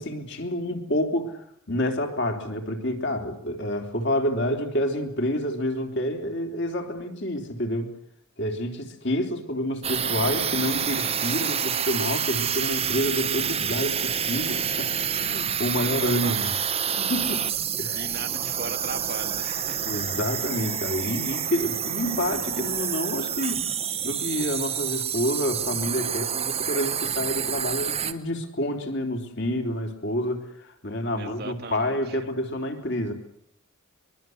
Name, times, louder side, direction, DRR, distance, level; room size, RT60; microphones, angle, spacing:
voice 1, 0.0-7.9 8.4-14.9 15.2-16.5 17.0-17.4 17.8-18.1 19.9-23.7 24.0-33.1, left 1 dB, 50° left, 4 dB, 3.6 m, -28 dB
sound 1, 9.8-28.1, right 8 dB, 25° right, 1.1 m, -28 dB
voice 2, 15.8-16.7 17.9-19.8 31.2-32.2, right 3 dB, 45° right, 7 dB, 1.7 m, -38 dB
23.5 x 23.0 x 8.0 m, 0.70 s
head